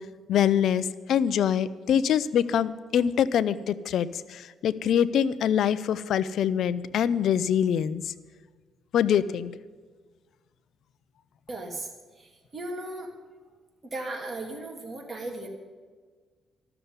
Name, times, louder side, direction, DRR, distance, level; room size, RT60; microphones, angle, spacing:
voice 1, 0.3-8.1 8.9-9.5, left 9 dB, 70° left, 16 dB, 0.5 m, -24 dB
voice 2, 11.5-11.9 12.2-13.1 13.8-15.5, right 2 dB, 30° right, 1 dB, 2.7 m, -36 dB
13.0 x 6.9 x 9.6 m, 1.5 s
cardioid pair, 90°, 0 cm